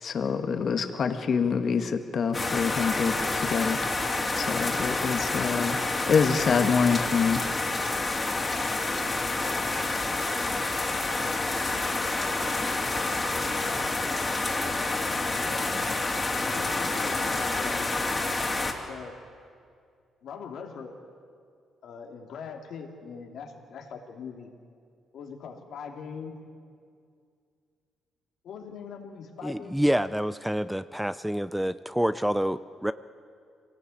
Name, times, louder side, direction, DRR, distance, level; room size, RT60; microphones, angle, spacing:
voice 1, 0.0-3.8 4.3-7.4, left 6 dB, 55° left, 7 dB, 1.6 m, -26 dB
sound 1, 2.3-18.7, left 2 dB, 25° left, 3.0 m, -28 dB
voice 2, 15.4-15.9 16.5-17.9 18.9-19.2 20.2-21.0 21.8-24.5 25.1-26.4 28.4-29.8, left 6 dB, 70° left, 2 dB, 2.7 m, -41 dB
voice 3, 29.4-32.9, equal, 5° right, 14 dB, 0.5 m, -27 dB
24.0 x 18.0 x 8.5 m, 2.3 s
cardioid pair, 90°, 0 cm